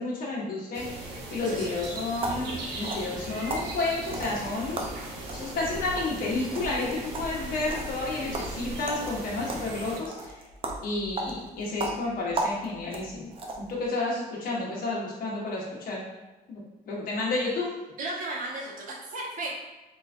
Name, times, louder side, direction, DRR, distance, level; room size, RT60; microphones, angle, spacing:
voice 1, 0.0-4.9 5.3-10.4 10.8-13.3 13.6-16.0 16.5-17.7, left 2 dB, 60° left, -4 dB, 1.2 m, -31 dB
sound 1, 0.7-10.0, right 2 dB, 85° right, 0.8 m, -38 dB
voice 2, 1.4-1.7 18.0-19.5, right 2 dB, 50° right, -3 dB, 1.0 m, -35 dB
sound 2, 1.7-13.8, right 2 dB, 35° right, 0.5 m, -37 dB
3.5 x 2.9 x 2.4 m, 1.1 s
cardioid pair, 110°, 17 cm